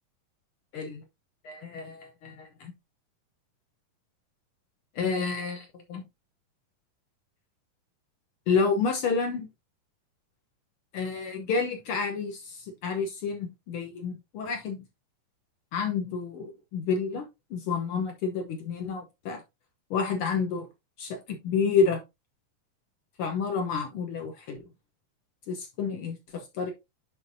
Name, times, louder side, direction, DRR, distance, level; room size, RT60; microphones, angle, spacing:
voice 1, 0.7-1.0 1.4-2.7 4.9-6.0 8.5-9.5 10.9-14.8 15.7-17.2 17.5-19.4 19.9-20.7 21.0-22.0 23.2-24.6 25.5-26.7, left 5 dB, 85° left, 1.2 m, -29 dB
11.0 x 3.8 x 2.7 m
omnidirectional pair, 3.8 m